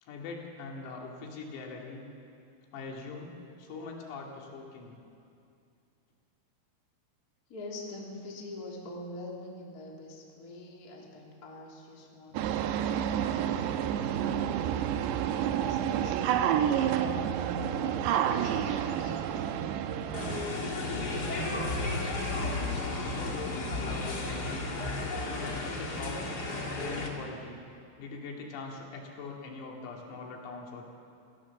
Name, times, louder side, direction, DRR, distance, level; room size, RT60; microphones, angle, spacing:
voice 1, 0.0-2.0 2.7-3.3 3.6-5.0 12.3-12.4 23.2-24.7 25.3-26.2 26.7-27.6 28.0-30.8, left 4 dB, 80° left, 0 dB, 5.2 m, -42 dB
voice 2, 7.5-14.7 15.4-16.5 17.0-19.9, left 1 dB, 20° left, -2 dB, 2.8 m, -45 dB
sound 1, 12.3-20.5, right 9 dB, 80° right, 2.5 m, -29 dB
sound 2, 20.1-27.1, left 2 dB, 45° left, 1.2 m, -33 dB
27.0 x 17.0 x 7.2 m, 2.5 s
omnidirectional pair, 6.0 m